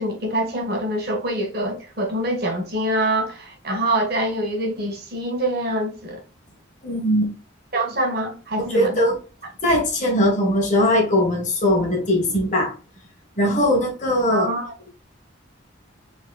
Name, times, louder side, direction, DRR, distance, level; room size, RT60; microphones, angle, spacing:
voice 1, 0.0-6.2 7.7-9.1 14.3-14.7, right 1 dB, 50° right, 1.7 m, -25 dB
voice 2, 6.8-7.3 8.6-9.2 9.6-12.7 13.4-14.5, left 1 dB, 35° left, 1.7 m, -20 dB
4.6 x 4.3 x 2.4 m
head